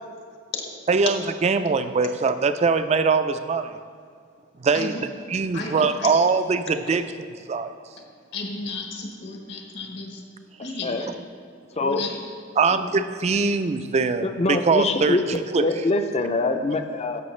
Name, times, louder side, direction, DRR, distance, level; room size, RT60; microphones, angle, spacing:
voice 1, 0.9-3.8 4.6-4.9 5.3-7.0 7.5-7.7 12.6-15.6, right 4 dB, 35° right, 10 dB, 0.3 m, -22 dB
voice 2, 4.7-5.1 5.5-6.2 6.5-6.6 8.0-10.2 10.6-11.2 11.8-12.3 12.7-12.9, left 3 dB, 65° left, 2 dB, 1.1 m, -34 dB
voice 3, 14.2-17.2, left 2 dB, 35° left, 7 dB, 0.5 m, -24 dB
14.0 x 5.5 x 3.2 m, 2.1 s
head